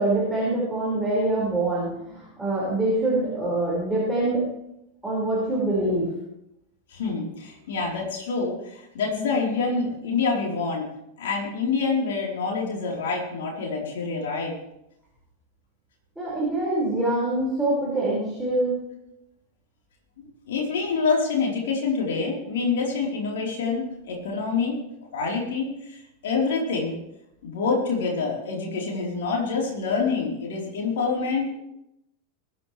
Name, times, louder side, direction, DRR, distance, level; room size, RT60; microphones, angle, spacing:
voice 1, 0.0-4.5 5.0-6.1 16.2-18.7, right 2 dB, 5° right, -8 dB, 5.7 m, -24 dB
voice 2, 6.9-10.9 11.2-14.5 20.2-24.8 25.1-26.9 27.4-31.5, left 4 dB, 60° left, -2 dB, 4.3 m, -26 dB
22.0 x 10.5 x 3.4 m, 0.84 s
figure-of-eight pair, 90°, 0 cm